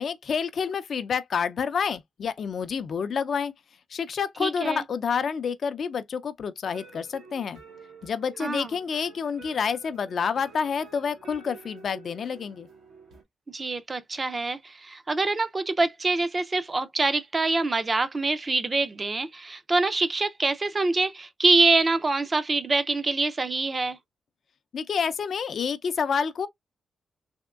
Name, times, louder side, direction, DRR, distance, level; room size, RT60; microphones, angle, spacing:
voice 1, 0.0-3.5 3.9-7.6 8.0-12.7 24.7-26.5, left 6 dB, 60° left, 0.4 m, -28 dB
voice 2, 4.4-4.8 8.4-8.7 13.5-24.0, right 3 dB, 30° right, 0.5 m, -25 dB
sound 1, 6.6-13.2, right 4 dB, 85° right, 1.0 m, -49 dB
3.5 x 2.9 x 2.3 m
cardioid pair, 85°, 0 cm